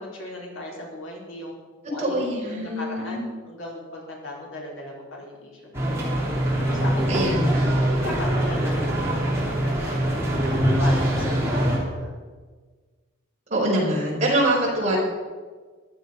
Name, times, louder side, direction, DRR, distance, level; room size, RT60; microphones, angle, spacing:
voice 1, 0.0-1.5 1.9-2.2 2.5-6.2 6.6-7.5 7.9-12.1, left 1 dB, 80° left, -2 dB, 4.3 m, -37 dB
voice 2, 2.0-3.2 7.1-7.7 13.5-15.0, right 1 dB, 35° right, -4 dB, 4.9 m, -24 dB
sound 1, 5.7-11.8, right 1 dB, 15° right, 3.3 m, -23 dB
14.5 x 12.0 x 5.3 m, 1.4 s
head